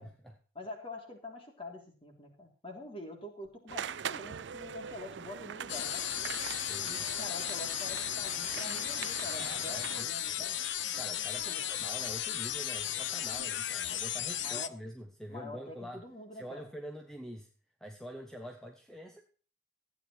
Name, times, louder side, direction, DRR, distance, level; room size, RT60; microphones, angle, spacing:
voice 1, 0.0-0.4 6.7-7.1 9.4-10.1 10.9-16.0 16.3-17.5 17.8-19.2, equal, ahead, 3 dB, 1.1 m, -45 dB
voice 2, 0.6-6.1 7.0-10.6 11.5-11.7 14.3-14.7 15.3-16.7, left 1 dB, 30° left, 2 dB, 3.5 m, -46 dB
sound 1, 3.7-10.0, right 7 dB, 65° right, 0.5 m, -42 dB
sound 2, 5.7-14.7, left 11 dB, 70° left, 0.8 m, -35 dB
15.0 x 9.4 x 4.5 m, 0.40 s
head